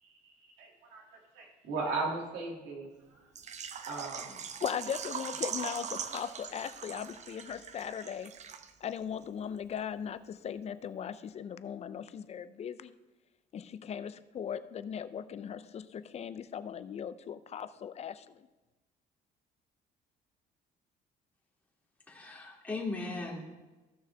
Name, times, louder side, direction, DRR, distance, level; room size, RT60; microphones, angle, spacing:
voice 1, 0.0-3.3 3.9-4.4, right 3 dB, 90° right, -1 dB, 2.3 m, -38 dB
Water / Liquid, 3.4-9.0 9.2-9.3 9.8-9.9, right 7 dB, 45° right, 0.6 m, -41 dB
voice 2, 4.6-8.3 8.8-12.9 13.5-18.5, left 8 dB, 40° left, 13 dB, 0.5 m, -38 dB
voice 3, 22.1-23.4, left 3 dB, 10° left, -3 dB, 2.4 m, -37 dB
14.5 x 6.3 x 3.4 m, 1.1 s
cardioid pair, 110°, 17 cm